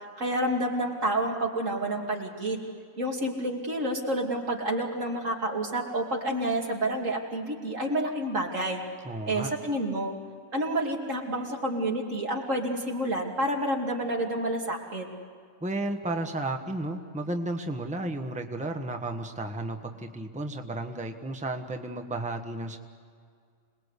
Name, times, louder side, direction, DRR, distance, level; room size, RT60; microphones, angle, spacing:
voice 1, 0.2-2.6 3.0-8.8 9.3-10.1 10.5-15.1, right 1 dB, 75° right, -1 dB, 3.2 m, -29 dB
voice 2, 9.0-9.5 15.6-22.8, right 2 dB, 5° right, 4 dB, 1.2 m, -33 dB
27.0 x 20.0 x 8.3 m, 2.1 s
omnidirectional pair, 1.3 m